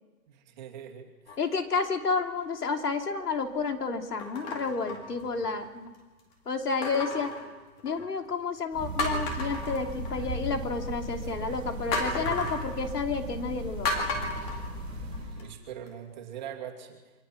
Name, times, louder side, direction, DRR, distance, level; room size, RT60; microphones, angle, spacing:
voice 1, 0.3-1.4 15.4-17.1, right 9 dB, 25° right, 1 dB, 2.6 m, -42 dB
sound 1, 1.3-1.8 2.4-2.6 4.2-5.7 6.8-8.2 8.6-8.7 9.0-10.5 11.9-12.7 13.8-15.4 15.9-16.0, left 2 dB, 10° left, 2.0 m, -34 dB
voice 2, 1.4-5.9 6.5-7.3 7.8-14.3, left 4 dB, 70° left, 5 dB, 3.2 m, -31 dB
sound 2, 8.7-15.4, right 1 dB, 10° right, 2.8 m, -37 dB
28.0 x 24.5 x 6.0 m, 1.2 s
hypercardioid pair, 165°, 49 cm